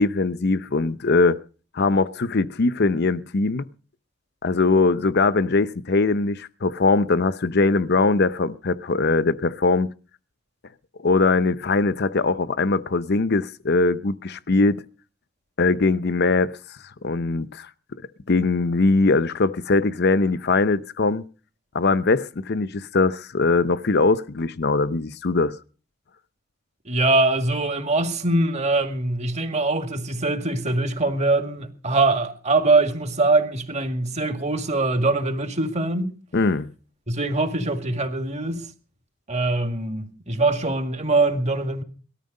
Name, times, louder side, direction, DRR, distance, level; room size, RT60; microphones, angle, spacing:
voice 1, 0.0-1.4 1.7-3.7 4.4-9.9 11.0-14.8 15.6-17.7 18.3-21.2 21.7-25.6 36.3-36.7, left 3 dB, 50° left, 0.7 m, -21 dB
voice 2, 26.9-36.1 37.1-38.7 39.3-41.8, right 2 dB, 35° right, 2.1 m, -23 dB
19.0 x 13.0 x 5.4 m
head